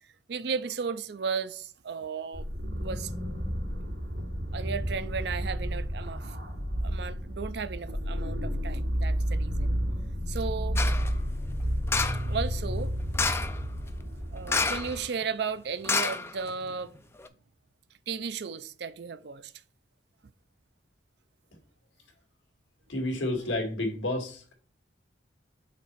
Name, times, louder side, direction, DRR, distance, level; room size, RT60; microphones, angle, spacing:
voice 1, 0.3-2.4 2.8-3.1 4.5-6.4 6.8-9.7 10.3-10.8 12.3-12.9 14.3-16.9 18.1-19.5, right 5 dB, 60° right, 0.4 m, -35 dB
sound 1, 2.3-15.0, equal, 80° right, 3.0 m, -31 dB
sound 2, 10.8-11.1 11.9-12.3 13.1-13.6 14.5-15.0 15.2-15.3 15.8-16.7 17.2-17.3, left 4 dB, 15° left, 0.3 m, -28 dB
voice 2, 22.9-24.5, left 1 dB, 85° left, 2.0 m, -30 dB
5.8 x 4.1 x 4.5 m
head